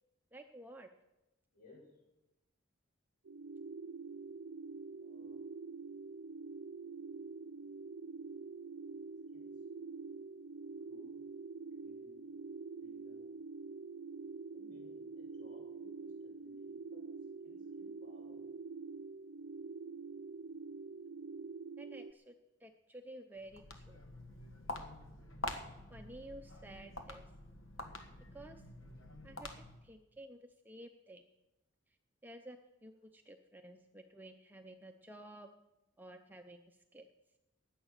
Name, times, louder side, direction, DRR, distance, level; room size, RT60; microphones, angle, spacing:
voice 1, 0.3-0.9 21.8-24.0 25.9-27.3 28.3-28.6 29.2-31.2 32.2-35.5 36.0-37.1, right 1 dB, 10° right, 5 dB, 0.6 m, -53 dB
voice 2, 1.5-2.0 5.0-5.4 9.3-9.6 10.9-11.2 11.7-12.4 12.8-13.2 14.5-17.1 17.4-18.5, left 2 dB, 45° left, -3 dB, 7.4 m, -62 dB
sound 1, 3.2-22.1, right 4 dB, 85° right, 0.5 m, -46 dB
Walk footsteps, 23.4-29.9, left 2 dB, 80° left, 1.5 m, -47 dB
16.0 x 10.0 x 6.6 m, 0.97 s
head